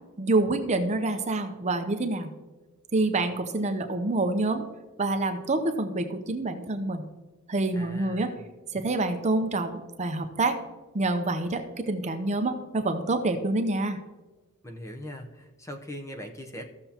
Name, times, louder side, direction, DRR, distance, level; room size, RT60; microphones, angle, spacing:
voice 1, 0.2-2.3 2.9-4.6 5.0-7.1 7.5-8.3 8.7-10.6 10.9-14.0, right 2 dB, 30° right, 7 dB, 0.7 m, -27 dB
voice 2, 7.7-8.4 14.6-16.6, equal, 15° left, 4 dB, 0.7 m, -40 dB
14.5 x 6.8 x 2.9 m, 1.2 s
head